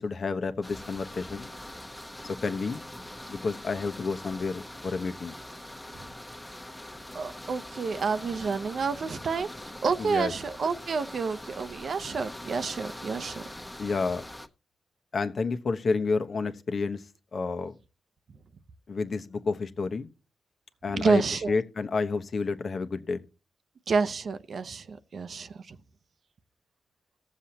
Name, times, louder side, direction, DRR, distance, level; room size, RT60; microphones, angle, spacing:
voice 1, 0.0-1.5 2.2-2.8 3.3-5.3 10.0-10.3 13.8-14.3 15.1-17.0 17.3-17.8 18.9-20.1 20.8-21.2 21.5-23.2, left 4 dB, 55° left, 1.1 m, -30 dB
sound 1, 0.6-14.5, left 1 dB, 10° left, 1.1 m, -43 dB
voice 2, 7.1-9.5 9.8-13.4 20.9-21.5 23.9-25.8, right 5 dB, 65° right, 0.8 m, -29 dB
19.0 x 7.3 x 2.9 m
cardioid pair, 75°, 0 cm